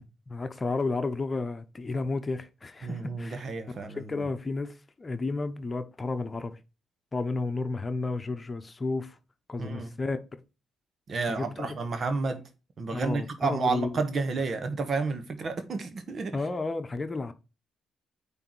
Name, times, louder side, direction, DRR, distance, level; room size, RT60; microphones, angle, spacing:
voice 1, 0.0-3.4 4.0-6.6 7.1-9.1 9.5-10.2 11.3-11.7 12.9-14.0 16.3-17.3, left 3 dB, 30° left, 1.0 m, -32 dB
voice 2, 2.8-4.3 9.6-9.9 11.1-12.4 12.8-16.4, right 4 dB, 50° right, 1.4 m, -31 dB
9.0 x 3.5 x 4.7 m
hypercardioid pair, 50°, 0 cm